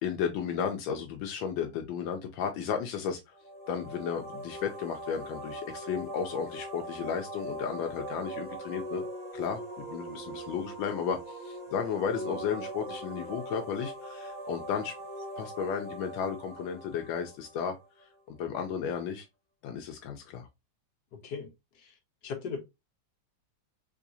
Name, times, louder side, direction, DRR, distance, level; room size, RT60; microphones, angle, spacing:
voice 1, 0.0-3.3 3.7-9.0 9.3-14.9 15.4-17.8 18.3-19.3 19.6-20.5, left 7 dB, 85° left, 1.3 m, -34 dB
sound 1, 3.3-18.0, right 1 dB, 25° left, 1.5 m, -41 dB
voice 2, 21.1-21.5 21.8-21.9 22.2-22.6, left 5 dB, 65° left, 1.5 m, -37 dB
3.7 x 3.3 x 2.6 m
omnidirectional pair, 2.0 m